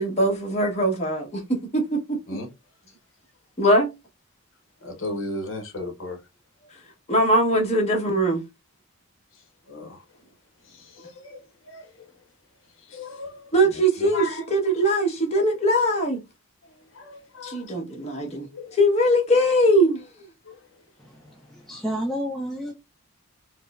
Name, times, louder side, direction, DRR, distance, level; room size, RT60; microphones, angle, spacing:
voice 1, 0.0-2.4 3.6-3.9 7.1-8.4 13.5-16.2 17.4-18.5 18.8-20.0, right 1 dB, 30° left, 1.0 m, -21 dB
voice 2, 4.8-6.2 6.6-6.7 9.3-10.0 10.6-12.0 12.8-14.4 16.6-18.8 20.4-20.6, left 2 dB, 60° left, 1.0 m, -37 dB
voice 3, 21.0-22.7, equal, ahead, 0.5 m, -31 dB
4.6 x 2.0 x 2.4 m
head